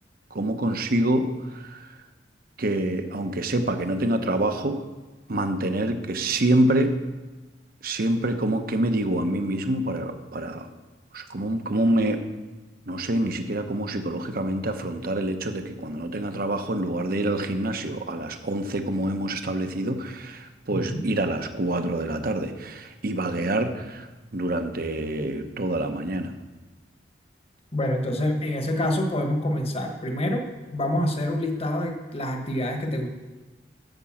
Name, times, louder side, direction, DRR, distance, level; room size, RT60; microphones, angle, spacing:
voice 1, 0.3-2.0 2.6-4.8 5.3-6.9 7.8-10.7 11.1-12.2 12.9-26.3, right 1 dB, 55° right, 7 dB, 0.9 m, -26 dB
voice 2, 20.7-21.0 27.7-33.1, left 1 dB, 35° left, 4 dB, 1.3 m, -27 dB
9.0 x 6.8 x 7.3 m, 1.2 s
head